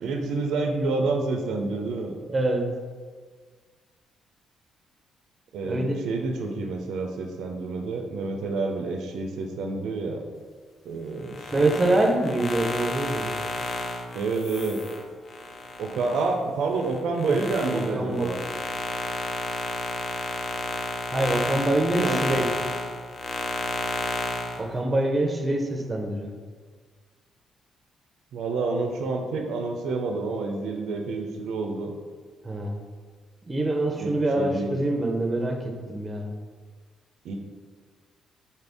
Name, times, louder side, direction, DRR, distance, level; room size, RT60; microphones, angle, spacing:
voice 1, 0.0-2.2 5.5-10.2 10.9-11.7 14.1-14.9 15.8-18.4 22.0-22.2 28.3-31.9 34.0-34.8 37.2-37.3, right 3 dB, 80° right, 3 dB, 0.4 m, -28 dB
voice 2, 2.3-2.6 5.6-6.0 11.5-13.3 17.3-17.4 17.7-18.3 21.1-22.5 24.6-26.3 32.4-32.8 33.5-36.3, right 2 dB, 25° right, 3 dB, 0.6 m, -25 dB
sound 1, 11.2-16.3 16.8-24.6, left 2 dB, 45° left, 0.4 m, -31 dB
4.2 x 2.5 x 3.4 m, 1.5 s
cardioid pair, 90°, 0 cm